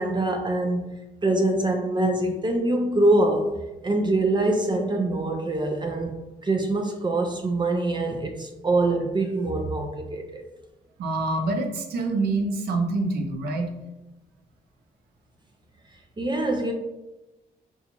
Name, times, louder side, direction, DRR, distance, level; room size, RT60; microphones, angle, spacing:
voice 1, 0.0-3.6 3.8-6.2 6.4-10.4 16.2-16.7, right 2 dB, 30° right, 0.5 m, -24 dB
voice 2, 11.0-13.7, right 2 dB, 85° right, 0.5 m, -26 dB
3.8 x 2.3 x 2.9 m
cardioid pair, 75°, 16 cm